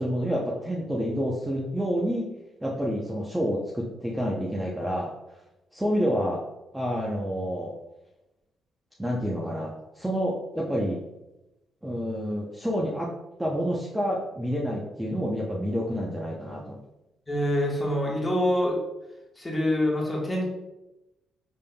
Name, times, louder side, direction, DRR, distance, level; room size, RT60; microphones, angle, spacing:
voice 1, 0.0-2.3 2.6-5.1 5.7-6.5 6.7-7.7 9.0-11.0 11.8-13.1 13.4-16.8, equal, 10° right, -4 dB, 0.6 m, -28 dB
voice 2, 17.3-18.8 19.4-20.5, left 1 dB, 15° left, -3 dB, 1.4 m, -25 dB
5.3 x 3.5 x 2.2 m, 0.97 s
cardioid pair, 90°, 0 cm